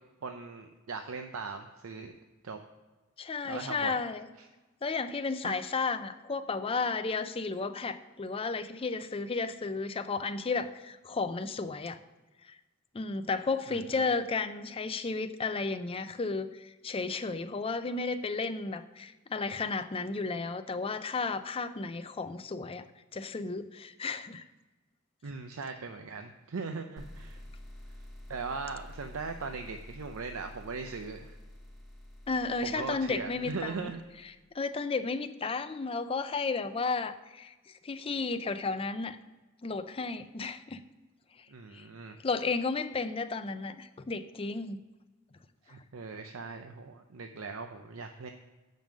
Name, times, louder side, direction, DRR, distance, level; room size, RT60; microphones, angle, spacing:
voice 1, 0.2-2.1 2.4-2.6 3.4-4.0 4.4-4.5 5.4-5.6 13.7-14.1 25.2-27.4 28.3-31.3 32.6-34.0 41.5-42.2 45.6-48.3, right 4 dB, 75° right, 5 dB, 0.6 m, -39 dB
voice 2, 3.2-4.3 4.8-12.0 12.4-12.6 12.9-22.8 23.1-24.4 32.3-33.9 34.5-39.2 39.6-40.8 41.7-41.9 42.2-44.8, left 4 dB, 25° left, 10 dB, 0.4 m, -33 dB
sound 1, 27.0-34.5, left 1 dB, ahead, 1.2 m, -49 dB
7.6 x 5.3 x 6.2 m, 1.2 s
head